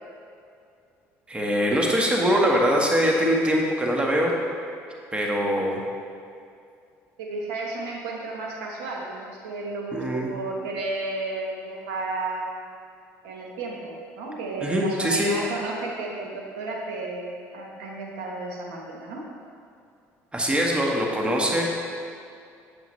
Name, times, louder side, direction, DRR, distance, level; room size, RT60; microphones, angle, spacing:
voice 1, 1.3-4.3 5.1-5.8 9.9-10.3 14.6-15.3 20.3-21.7, equal, 15° right, -1 dB, 1.5 m, -23 dB
voice 2, 7.2-12.6 13.2-19.2, right 2 dB, 85° right, -1 dB, 1.2 m, -33 dB
8.2 x 7.6 x 3.2 m, 2.4 s
supercardioid pair, 80°, 7 cm